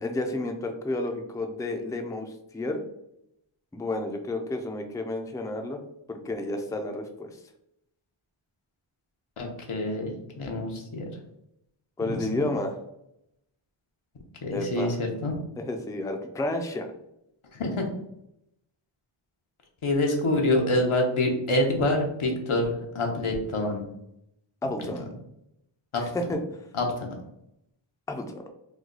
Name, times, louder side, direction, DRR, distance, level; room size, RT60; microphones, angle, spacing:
voice 1, 0.0-2.8 3.7-5.8 6.1-7.4 12.0-12.8 14.5-15.0 15.6-16.9 24.6-25.1 25.9-26.4 28.1-28.4, left 2 dB, 10° left, 4 dB, 0.3 m, -31 dB
voice 2, 9.4-10.1 10.4-11.0 12.1-12.5 14.4-15.4 17.5-17.8 19.8-23.8 25.9-26.0 26.7-27.1, left 1 dB, 90° left, 1 dB, 0.8 m, -26 dB
3.1 x 2.2 x 3.8 m, 0.80 s
wide cardioid pair, 55°, 49 cm